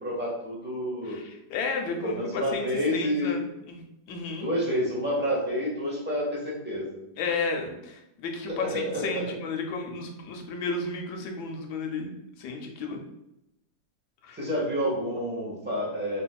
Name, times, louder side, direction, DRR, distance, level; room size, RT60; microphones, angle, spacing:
voice 1, 0.0-1.2 1.9-3.3 4.4-7.0 8.5-9.3 14.3-16.2, equal, 15° right, -5 dB, 0.3 m, -29 dB
voice 2, 1.0-2.6 2.9-3.8 4.1-4.5 7.2-13.0 14.2-14.4, left 4 dB, 80° left, 3 dB, 1.1 m, -33 dB
3.4 x 2.6 x 2.2 m, 0.87 s
omnidirectional pair, 1.8 m